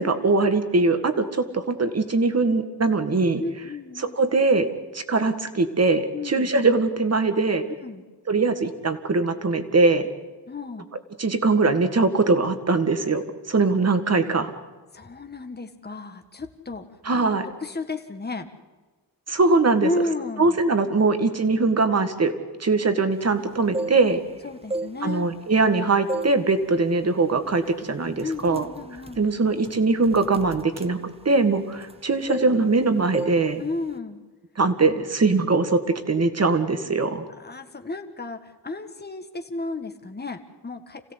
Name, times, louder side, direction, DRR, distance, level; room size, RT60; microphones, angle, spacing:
voice 1, 0.0-3.4 4.0-4.7 4.9-7.7 8.3-10.1 11.2-14.5 17.1-17.5 19.3-19.9 20.4-22.3 22.6-24.2 25.0-28.7 29.2-31.0 31.3-33.6 34.6-35.8 36.1-37.2, right 3 dB, 40° right, 9 dB, 1.9 m, -21 dB
voice 2, 3.4-4.2 6.1-6.5 7.8-8.0 10.5-10.9 14.9-17.2 17.6-18.5 19.8-20.6 24.4-25.3 28.2-29.2 33.6-34.2 37.4-41.0, left 2 dB, 25° left, 6 dB, 1.7 m, -32 dB
sound 1, 23.5-24.3 24.6-25.7 26.1-26.4 26.8-27.0 27.7-27.8 28.1-32.0 32.3-32.8 33.1-33.4 33.7-34.0, right 2 dB, 15° right, 0.9 m, -33 dB
27.5 x 16.5 x 8.1 m, 1.3 s
wide cardioid pair, 115°, 40 cm